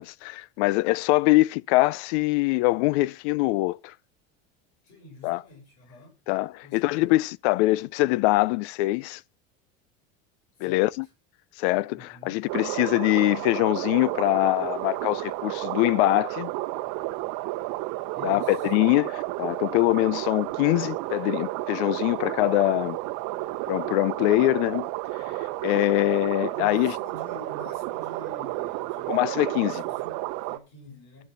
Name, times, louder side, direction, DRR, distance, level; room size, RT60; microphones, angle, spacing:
voice 1, 0.0-3.9 5.2-5.4 6.3-9.2 10.6-11.0 11.6-16.5 18.2-23.0 23.7-24.9 25.6-26.9 29.1-29.8, left 19 dB, 80° left, 0.5 m, -23 dB
voice 2, 4.8-6.2 6.6-7.1 10.6-10.9 12.0-12.5 18.1-18.7 26.5-31.2, left 1 dB, 55° left, 5.7 m, -47 dB
sound 1, 12.5-30.6, right 18 dB, 60° right, 0.8 m, -32 dB
11.0 x 6.6 x 5.9 m
cardioid pair, 140°, 33 cm